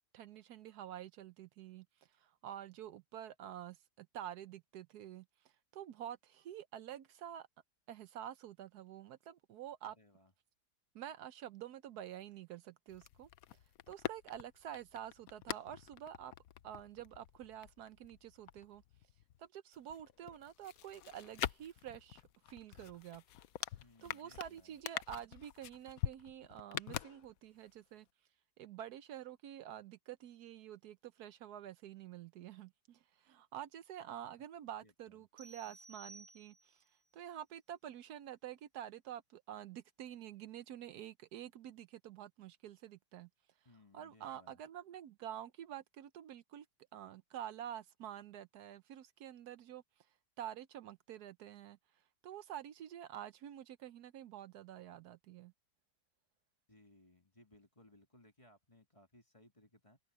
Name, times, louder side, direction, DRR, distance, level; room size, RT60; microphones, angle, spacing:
voice 1, 0.1-1.9 2.2-5.2 5.7-7.5 7.9-10.0 10.9-13.3 13.9-16.3 16.6-18.8 19.4-23.2 24.0-28.1 28.6-36.8 37.1-43.3 43.9-46.7 46.9-49.8 50.4-51.8 52.2-55.5, right 11 dB, 75° right, 1.2 m, -48 dB
voice 2, 9.8-10.3 23.8-24.8 34.8-35.3 43.6-44.6 56.7-60.0, left 2 dB, 20° left, 2.0 m, -64 dB
sound 1, 12.9-19.4 19.7-27.7 28.0-28.1, left 12 dB, 65° left, 1.0 m, -46 dB
sound 2, 35.4-36.9, right 2 dB, 40° right, 0.9 m, -57 dB
omnidirectional pair, 1.7 m